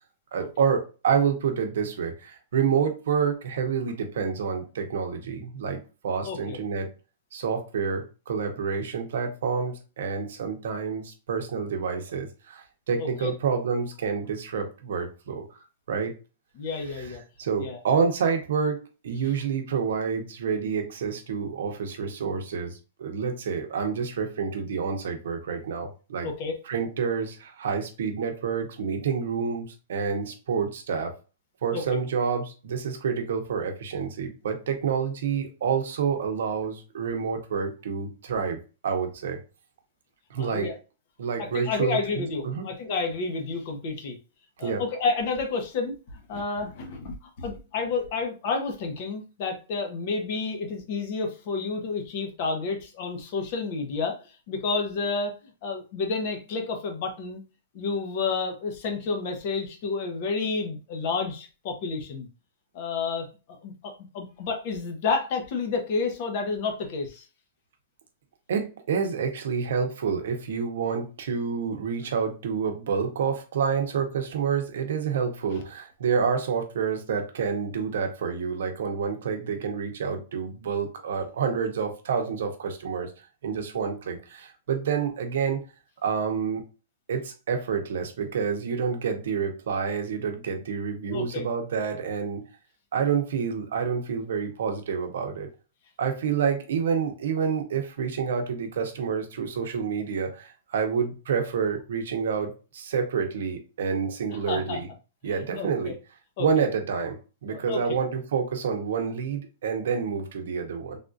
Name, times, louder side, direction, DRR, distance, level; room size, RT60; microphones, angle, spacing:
voice 1, 0.3-6.9 7.3-16.1 16.7-26.3 26.6-31.1 31.6-38.6 38.8-39.4 40.3-40.7 41.2-42.7 44.6-44.9 68.5-83.1 83.4-85.6 86.0-86.6 87.1-92.4 92.9-95.5 96.0-104.9 105.2-105.9 106.4-107.2 107.4-111.0, right 6 dB, 70° right, 5 dB, 0.7 m, -28 dB
voice 2, 6.2-6.6 13.0-13.3 16.6-17.2 17.6-17.8 26.2-26.6 31.7-31.8 40.4-40.8 41.4-44.2 44.6-54.2 54.5-55.3 55.6-57.4 57.7-62.3 62.7-63.3 63.6-67.2 91.1-91.5 104.3-104.8 105.6-105.9 106.4-106.7 107.5-108.0, left 4 dB, 40° left, 4 dB, 0.7 m, -30 dB
3.5 x 2.4 x 2.5 m, 0.33 s
supercardioid pair, 170°, 0 cm